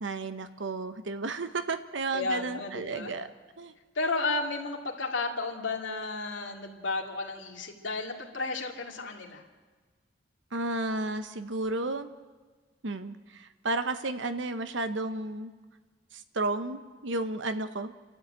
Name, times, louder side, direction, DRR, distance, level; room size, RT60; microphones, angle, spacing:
voice 1, 0.0-3.3 3.6-3.7 10.5-12.1 12.8-15.5 16.1-17.9, right 2 dB, 70° right, 10 dB, 1.0 m, -32 dB
voice 2, 2.1-3.1 3.9-9.4, left 3 dB, 70° left, 1 dB, 2.7 m, -33 dB
29.5 x 13.0 x 8.9 m, 1.4 s
head